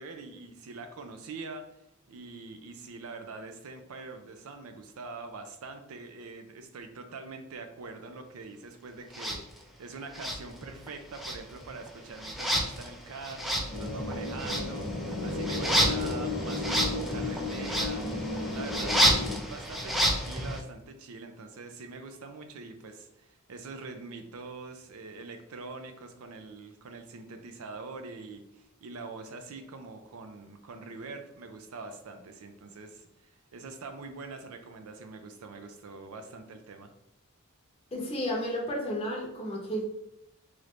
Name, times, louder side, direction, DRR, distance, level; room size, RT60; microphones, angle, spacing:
voice 1, 0.0-1.7 2.1-18.0 18.4-36.9, right 3 dB, 75° right, 7 dB, 0.5 m, -44 dB
sound 1, 9.1-9.4 10.1-10.9 11.1-20.6, equal, ahead, 0.3 m, -30 dB
sound 2, 13.7-19.4, left 2 dB, 60° left, 0.9 m, -33 dB
voice 2, 37.9-39.8, equal, 25° left, -3 dB, 0.7 m, -32 dB
3.1 x 2.5 x 3.1 m, 0.83 s
head